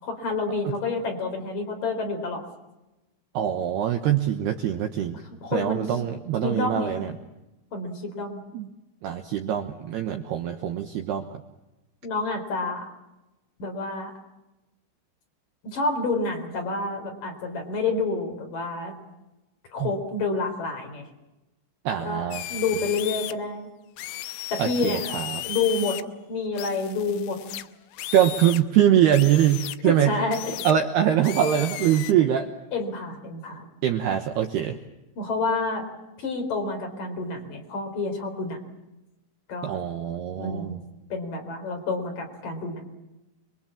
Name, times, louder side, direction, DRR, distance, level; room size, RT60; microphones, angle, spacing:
voice 1, 0.0-2.5 5.1-6.0 6.4-7.0 7.7-8.4 12.0-12.9 13.6-14.1 15.6-18.9 19.7-21.0 22.0-23.7 24.5-25.1 25.4-26.0 26.3-27.4 29.8-30.5 32.7-33.6 35.2-35.8 36.2-38.6 39.5-39.7 40.4-40.8 41.1-42.8, left 3 dB, 40° left, 3 dB, 5.2 m, -28 dB
voice 2, 3.3-5.2 5.5-7.1 8.5-8.7 9.0-11.4 19.8-19.9 21.9-22.4 24.6-25.4 28.1-30.1 30.6-32.5 33.8-34.8 39.6-40.8, right 10 dB, 75° right, 6 dB, 2.6 m, -23 dB
sound 1, 22.3-23.3 24.0-26.0 26.6-28.6 29.1-29.8 30.3-30.7 31.2-32.1, left 14 dB, 85° left, 3.8 m, -35 dB
28.5 x 23.5 x 7.3 m, 1.0 s
omnidirectional pair, 6.0 m